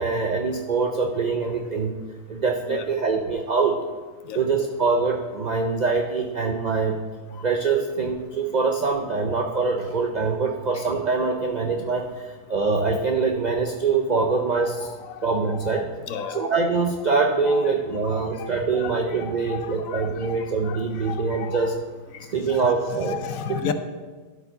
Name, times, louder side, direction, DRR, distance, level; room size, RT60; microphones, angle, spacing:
voice 1, 0.0-2.0 2.3-3.8 4.3-7.0 7.4-14.9 15.2-15.9 16.3-21.8 22.3-23.2 23.5-23.7, right 4 dB, 70° right, 3 dB, 0.4 m, -24 dB
voice 2, 14.9-15.2 15.5-16.5 17.5-17.6 18.0-18.9 19.2-21.7 22.1-22.2 22.5-23.7, left 8 dB, 70° left, 9 dB, 1.0 m, -34 dB
12.5 x 4.6 x 3.8 m, 1.4 s
omnidirectional pair, 1.5 m